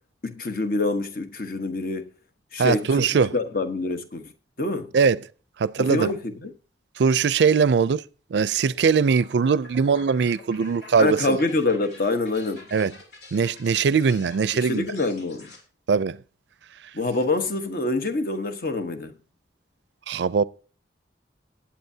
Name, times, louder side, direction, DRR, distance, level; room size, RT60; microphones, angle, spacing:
voice 1, 0.2-2.1 2.5-4.3 4.6-4.9 5.8-6.5 11.0-12.7 14.5-15.5 16.9-19.1, left 2 dB, 55° left, 1.1 m, -26 dB
voice 2, 2.6-3.3 4.9-5.2 5.6-6.1 7.0-8.0 8.3-11.4 12.7-12.9 13.3-14.9 15.9-16.2 20.1-20.4, right 5 dB, 75° right, 0.4 m, -21 dB
sound 1, 8.7-15.6, left 2 dB, 75° left, 3.2 m, -47 dB
20.0 x 8.5 x 2.8 m
head